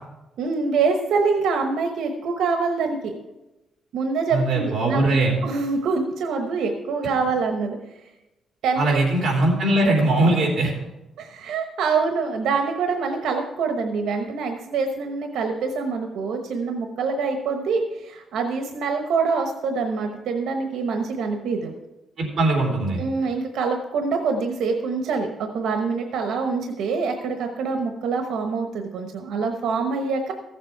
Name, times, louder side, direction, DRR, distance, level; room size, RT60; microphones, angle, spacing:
voice 1, 0.4-3.1 3.9-8.0 8.6-9.0 11.2-21.7 23.0-30.3, right 4 dB, 85° right, 4 dB, 1.0 m, -25 dB
voice 2, 4.3-5.4 8.8-10.7 22.2-23.0, right 2 dB, 40° right, -1 dB, 3.4 m, -20 dB
15.0 x 7.5 x 4.5 m, 1.0 s
cardioid pair, 170°, 0 cm